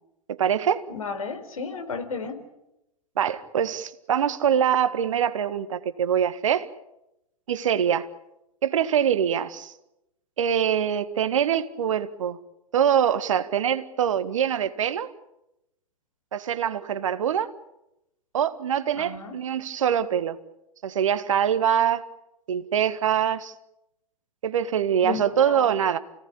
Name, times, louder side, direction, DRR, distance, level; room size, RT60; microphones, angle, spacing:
voice 1, 0.3-0.8 3.2-6.7 7.5-8.1 8.6-9.7 10.4-12.4 12.7-15.1 16.3-17.5 18.3-20.4 20.8-22.0 22.5-23.5 24.4-26.0, right 9 dB, 60° right, 11 dB, 1.7 m, -24 dB
voice 2, 0.9-2.4 19.0-19.4 25.0-25.7, left 5 dB, 70° left, 6 dB, 4.7 m, -33 dB
30.0 x 18.0 x 8.6 m, 0.88 s
figure-of-eight pair, 100°, 19 cm